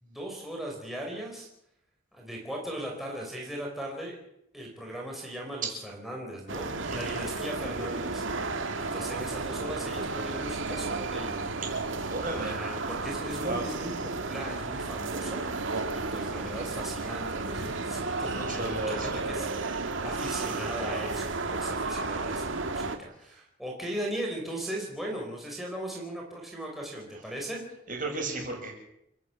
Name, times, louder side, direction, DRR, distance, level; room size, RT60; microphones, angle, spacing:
voice 1, 0.0-1.5 2.1-4.1 4.5-8.2 8.8-11.7 12.3-19.5 20.0-27.6, right 1 dB, ahead, -2 dB, 4.8 m, -38 dB
sound 1, 6.5-23.0, right 3 dB, 80° right, 2.0 m, -33 dB
voice 2, 12.1-12.5 13.4-13.7 18.3-19.2 27.9-28.7, right 2 dB, 45° right, 1 dB, 7.1 m, -34 dB
29.5 x 11.5 x 8.6 m, 0.79 s
head